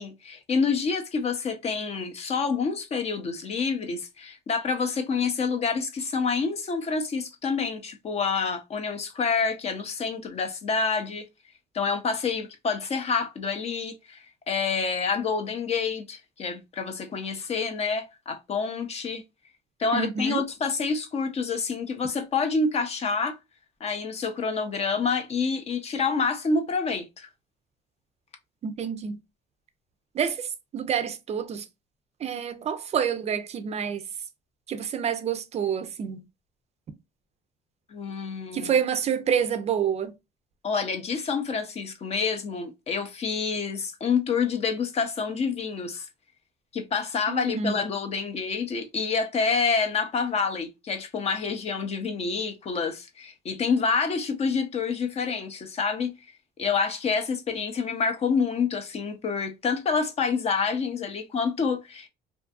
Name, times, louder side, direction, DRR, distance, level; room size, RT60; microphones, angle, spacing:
voice 1, 0.0-11.3 11.7-14.2 14.5-19.2 19.8-23.4 23.8-27.3 37.9-38.7 40.6-46.1 46.7-56.1 56.6-62.1, left 5 dB, 40° left, 0.5 m, -27 dB
voice 2, 19.9-20.4 28.6-29.2 30.1-31.7 32.2-34.0 34.7-36.3 38.5-40.1 47.3-47.7, right 7 dB, 40° right, 0.4 m, -28 dB
2.6 x 2.5 x 2.3 m
cardioid pair, 110°, 17 cm